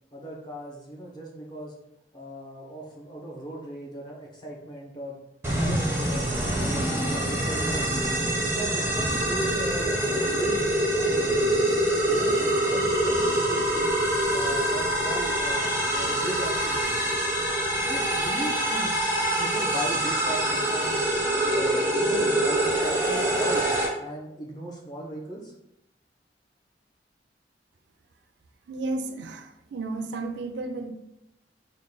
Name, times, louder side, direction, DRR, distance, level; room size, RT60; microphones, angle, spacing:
voice 1, 0.1-1.7 2.1-5.2 5.5-8.1 8.5-11.5 12.1-13.9 14.3-16.9 17.9-19.0 19.4-21.0 21.4-23.7 24.0-25.5, right 1 dB, 25° left, -2 dB, 0.8 m, -37 dB
sound 1, 5.4-23.9, right 1 dB, 15° right, 0.6 m, -25 dB
voice 2, 28.7-30.9, right 2 dB, 75° right, 6 dB, 0.4 m, -33 dB
3.7 x 2.3 x 3.8 m, 0.86 s
head